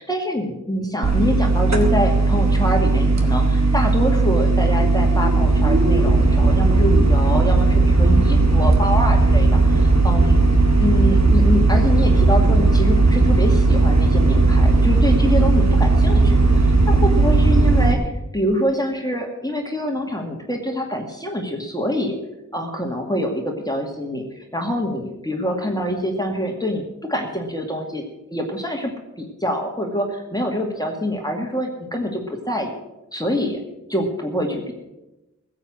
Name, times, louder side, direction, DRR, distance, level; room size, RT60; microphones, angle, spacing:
voice 1, 0.0-10.4 10.8-22.2 22.5-28.0 28.3-28.9 29.2-32.7 33.1-33.6 33.9-34.7, equal, 10° left, 1 dB, 2.1 m, -25 dB
sound 1, 1.0-17.9, right 3 dB, 60° right, 1.9 m, -16 dB
15.5 x 8.0 x 7.7 m, 0.98 s
wide cardioid pair, 50°, 31 cm